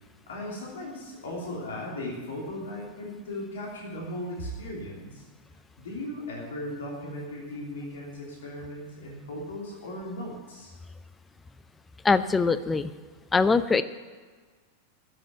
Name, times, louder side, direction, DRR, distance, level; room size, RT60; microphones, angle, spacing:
voice 1, 0.3-5.2 5.8-10.7, left 1 dB, 60° left, -3 dB, 2.9 m, -37 dB
voice 2, 12.0-12.9 13.3-13.8, left 4 dB, 15° left, 14 dB, 0.5 m, -22 dB
12.0 x 7.5 x 9.4 m, 1.5 s
figure-of-eight pair, 90°, 0 cm